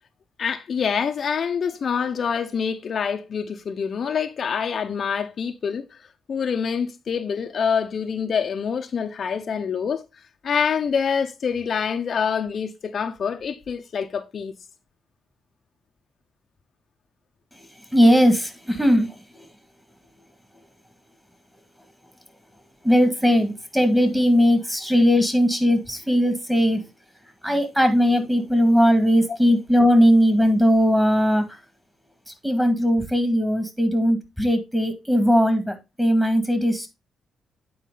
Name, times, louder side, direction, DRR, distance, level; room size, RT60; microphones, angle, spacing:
voice 1, 0.4-5.8 6.3-10.0 10.4-14.5 24.1-24.2, left 6 dB, 55° left, 0.7 m, -26 dB
voice 2, 17.9-19.5 22.8-26.8 27.4-31.4 32.4-36.9, equal, 5° right, 2.0 m, -19 dB
9.2 x 4.4 x 3.9 m
cardioid pair, 90°, 0 cm